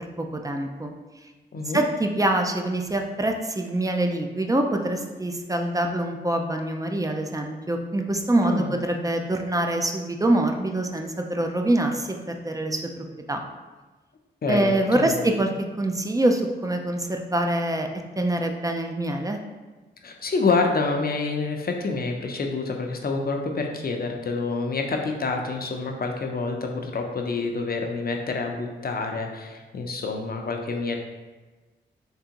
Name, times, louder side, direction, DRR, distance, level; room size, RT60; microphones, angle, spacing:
voice 1, 0.2-0.9 1.7-12.1 12.4-13.4 14.5-15.5 15.8-17.9 18.2-19.4, right 1 dB, 15° right, 4 dB, 0.5 m, -25 dB
voice 2, 8.4-8.7 14.4-15.2 20.0-31.0, left 3 dB, 50° left, 2 dB, 0.7 m, -27 dB
3.7 x 3.3 x 2.9 m, 1.3 s
supercardioid pair, 40°, 20 cm